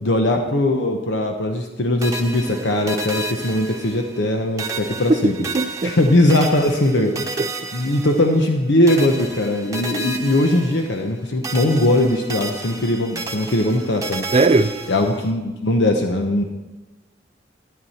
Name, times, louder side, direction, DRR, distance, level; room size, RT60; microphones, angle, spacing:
voice 1, 0.0-5.3 5.8-7.4 7.7-14.2 14.9-16.4, left 1 dB, 75° left, 0.9 m, -20 dB
sound 1, 2.0-4.3 4.6-8.6 8.9-11.2 11.4-15.3, right 2 dB, 20° right, 1.0 m, -32 dB
voice 2, 5.5-6.0 7.0-7.1 7.4-7.7 14.3-14.8, right 3 dB, 35° right, 0.5 m, -19 dB
12.5 x 9.3 x 4.3 m
head